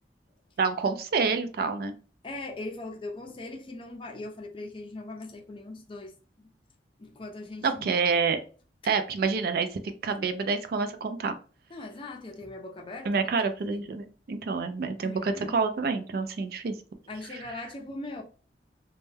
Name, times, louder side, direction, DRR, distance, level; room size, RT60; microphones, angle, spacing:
voice 1, 0.6-1.9 7.6-8.4 8.8-11.4 13.1-16.7, right 4 dB, 55° right, 0.3 m, -28 dB
voice 2, 2.2-6.1 6.4-6.5 7.0-7.9 11.7-13.2 13.7-13.8 15.0-15.6 17.1-18.2, left 2 dB, 30° left, 0.5 m, -40 dB
2.1 x 2.1 x 3.1 m
head